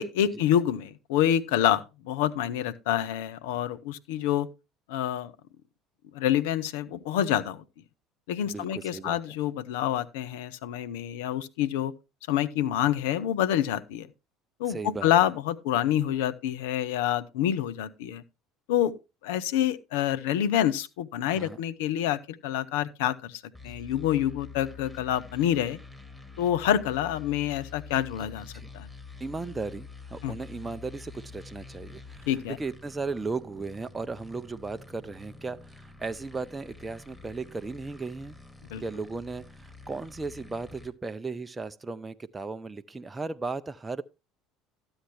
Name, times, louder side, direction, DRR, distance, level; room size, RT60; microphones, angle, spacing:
voice 1, 0.0-4.5 4.9-5.3 6.1-7.6 8.3-11.9 12.3-14.1 14.6-18.2 18.7-18.9 19.2-25.8 26.4-28.5 28.7-28.9 30.2-30.4 32.3-32.6 38.7-38.8, left 11 dB, 70° left, 0.7 m, -27 dB
voice 2, 8.5-9.2 14.6-15.1 21.3-21.6 28.5-28.7 29.2-38.4 38.8-44.0, right 3 dB, 20° right, 0.5 m, -36 dB
sound 1, 23.5-40.9, left 4 dB, 5° left, 2.0 m, -47 dB
12.5 x 8.8 x 3.1 m
hypercardioid pair, 65°, 0 cm